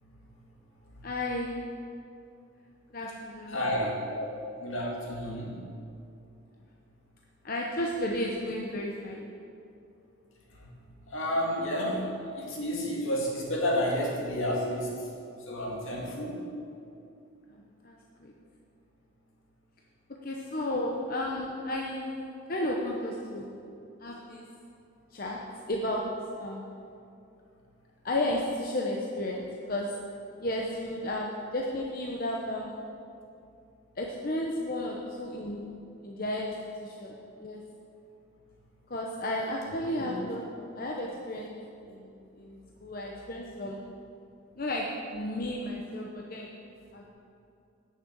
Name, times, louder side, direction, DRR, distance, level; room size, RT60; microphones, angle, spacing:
voice 1, 1.0-1.6 2.9-3.6 4.1-4.3 7.4-9.3 11.8-12.0 17.5-18.3 20.2-23.5 24.0-24.5 25.1-25.4 25.7-26.1 26.4-26.6 28.0-29.9 30.4-32.8 34.0-35.7 36.0-37.6 38.9-41.5 41.9-43.8 44.6-46.5 46.9-47.1, left 1 dB, 45° left, -1 dB, 0.8 m, -33 dB
voice 2, 3.5-4.0 4.6-5.6 10.6-10.7 11.1-12.0 12.4-14.9 15.5-16.4 39.7-40.2, equal, 70° left, -2 dB, 2.2 m, -31 dB
10.5 x 6.6 x 7.4 m, 2.6 s
head